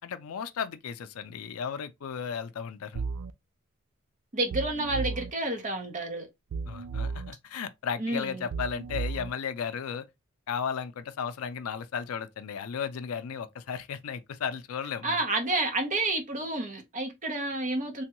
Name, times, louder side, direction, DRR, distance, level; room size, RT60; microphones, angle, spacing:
voice 1, 0.0-3.0 6.7-10.1 10.5-15.2, left 7 dB, 80° left, 0.4 m, -35 dB
sound 1, 2.9-3.3 4.5-5.3 6.5-7.3 8.5-9.3, right 4 dB, 85° right, 0.3 m, -34 dB
voice 2, 4.3-6.3 8.0-8.5 15.0-18.0, right 2 dB, 35° right, 0.7 m, -30 dB
3.4 x 2.2 x 2.9 m
head